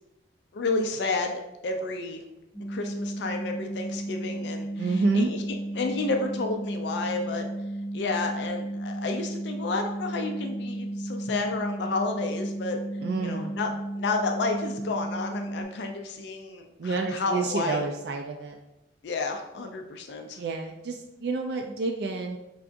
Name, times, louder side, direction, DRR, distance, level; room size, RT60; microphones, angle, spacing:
voice 1, 0.5-2.2 2.7-5.4 5.7-7.5 7.9-12.8 13.2-17.8 19.0-20.4, left 3 dB, 70° left, 4 dB, 0.4 m, -31 dB
sound 1, 2.5-15.6, right 1 dB, 30° left, 0.7 m, -34 dB
voice 2, 4.8-5.3 13.0-13.6 16.8-18.5 20.4-22.4, right 3 dB, 60° right, 3 dB, 0.3 m, -29 dB
4.6 x 3.4 x 2.5 m, 0.94 s
head